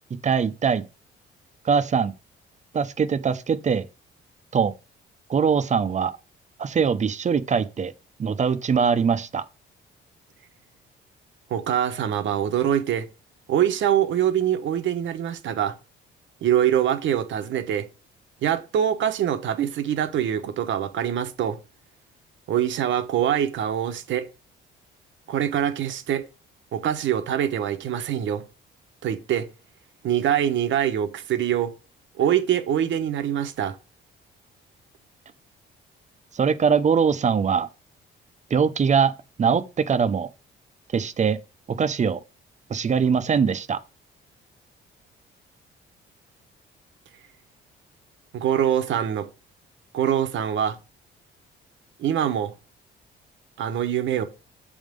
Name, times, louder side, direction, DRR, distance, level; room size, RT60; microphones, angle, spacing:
voice 1, 0.2-0.8 1.6-2.1 2.7-3.9 4.5-4.7 5.3-6.1 6.6-7.9 8.2-9.4 36.3-37.7 38.5-39.1 39.4-40.3 40.9-41.4 41.8-42.2 42.7-43.8, right 6 dB, 35° right, 0.7 m, -22 dB
voice 2, 11.5-13.1 13.5-15.8 16.4-17.9 18.4-21.6 22.5-24.3 25.3-26.3 26.7-28.4 29.0-29.5 30.0-31.7 32.2-33.8 48.3-49.3 49.9-50.8 52.0-52.5 53.6-54.2, right 10 dB, 75° right, 1.0 m, -24 dB
7.1 x 3.7 x 5.2 m
cardioid pair, 90°, 20 cm